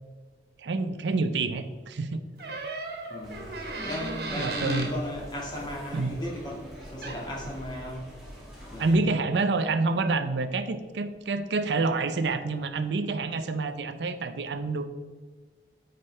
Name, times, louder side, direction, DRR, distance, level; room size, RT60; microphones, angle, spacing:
voice 1, 0.6-2.2 4.4-4.9 5.9-6.1 8.8-14.9, right 3 dB, 85° right, 10 dB, 0.5 m, -27 dB
Door, 2.4-5.0 6.7-6.8 7.0-7.4, right 3 dB, 65° right, 1.5 m, -35 dB
voice 2, 3.1-8.1 8.7-9.1, left 1 dB, 25° left, -4 dB, 1.8 m, -36 dB
sound 1, 3.2-9.0, equal, ahead, 2.0 m, -45 dB
8.3 x 5.2 x 3.3 m, 1.5 s
head